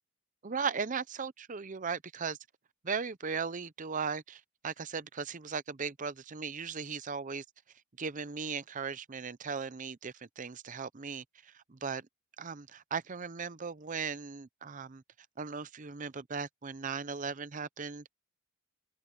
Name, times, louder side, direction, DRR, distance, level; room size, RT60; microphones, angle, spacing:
voice 1, 0.4-2.4 2.8-7.4 8.0-12.1 12.4-15.0 15.4-18.1, right 5 dB, 35° right, 0.6 m, -37 dB
head